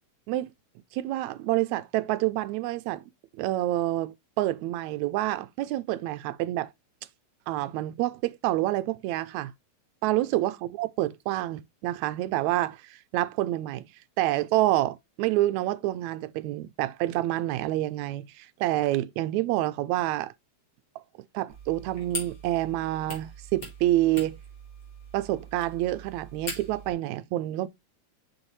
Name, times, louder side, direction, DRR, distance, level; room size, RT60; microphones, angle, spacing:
voice 1, 0.9-3.0 3.4-6.7 7.5-9.5 10.0-13.9 14.2-20.3 21.3-24.4 25.1-27.7, right 15 dB, 80° right, 1.8 m, -28 dB
sound 1, 21.5-26.9, left 1 dB, 35° left, 3.3 m, -41 dB
6.9 x 6.4 x 3.1 m
omnidirectional pair, 3.4 m